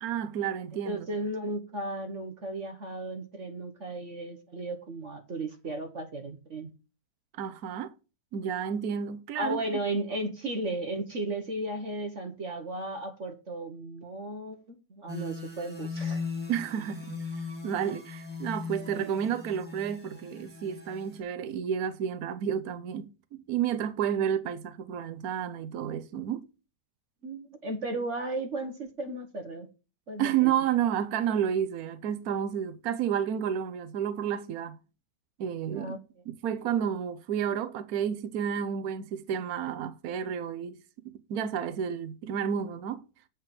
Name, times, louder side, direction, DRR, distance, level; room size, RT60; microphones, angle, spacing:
voice 1, 0.0-1.1 7.4-7.9 8.3-9.6 16.5-17.2 17.6-26.5 30.2-34.8 35.4-36.0 36.3-40.8 41.3-43.0, right 9 dB, 65° right, 1.3 m, -31 dB
voice 2, 0.8-6.7 9.4-16.2 27.2-29.7 30.1-30.5 35.7-36.0, right 2 dB, 45° right, 1.5 m, -35 dB
sound 1, 15.1-21.2, left 5 dB, 5° left, 2.1 m, -38 dB
8.3 x 5.2 x 5.9 m
omnidirectional pair, 1.8 m